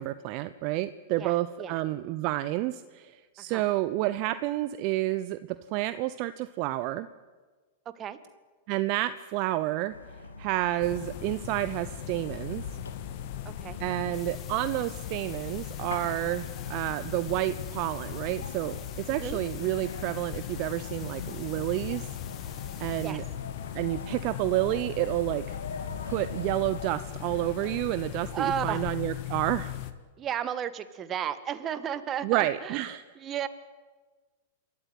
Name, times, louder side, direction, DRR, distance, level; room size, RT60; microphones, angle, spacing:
voice 1, 0.0-5.4 5.7-7.1 8.7-9.9 10.4-12.6 13.8-18.8 19.1-22.1 22.8-23.2 23.7-25.6 26.1-29.8 32.2-33.0, right 16 dB, 50° right, 13 dB, 0.8 m, -30 dB
voice 2, 1.2-1.7 3.4-3.6 7.9-8.2 13.4-13.8 19.1-19.4 23.0-23.2 28.3-28.8 30.2-32.8 33.1-33.5, right 9 dB, 30° right, 13 dB, 1.6 m, -33 dB
sound 1, 9.9-27.0, left 4 dB, 85° left, 2.7 m, -43 dB
sound 2, 10.8-29.9, left 12 dB, 55° left, 1.6 m, -39 dB
sound 3, 14.1-23.1, left 10 dB, 35° left, 1.8 m, -50 dB
28.0 x 13.5 x 9.3 m, 1.4 s
hypercardioid pair, 105°, 0 cm